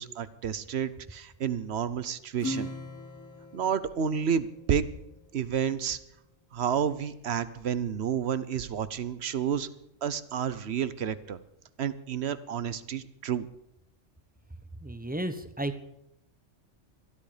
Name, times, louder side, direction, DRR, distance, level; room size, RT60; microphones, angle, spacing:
voice 1, 0.0-2.7 3.5-4.9 5.3-6.0 6.5-9.7 10.0-11.4 11.8-13.5, right 8 dB, 60° right, 15 dB, 1.0 m, -30 dB
Acoustic guitar / Strum, 2.4-5.3, left 1 dB, 15° left, 1.4 m, -40 dB
voice 2, 14.8-15.8, right 1 dB, 10° right, 10 dB, 0.8 m, -33 dB
21.5 x 13.0 x 5.0 m, 0.82 s
omnidirectional pair, 1.3 m